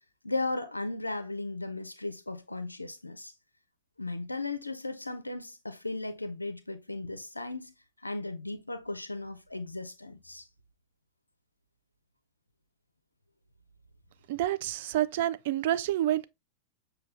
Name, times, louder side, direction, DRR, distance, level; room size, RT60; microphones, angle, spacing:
voice 1, 0.2-3.3 4.0-7.7 8.0-10.5, left 2 dB, 85° left, 0.4 m, -36 dB
voice 2, 14.3-16.2, right 13 dB, 55° right, 0.3 m, -28 dB
6.5 x 2.2 x 3.1 m
figure-of-eight pair, 95°, 0 cm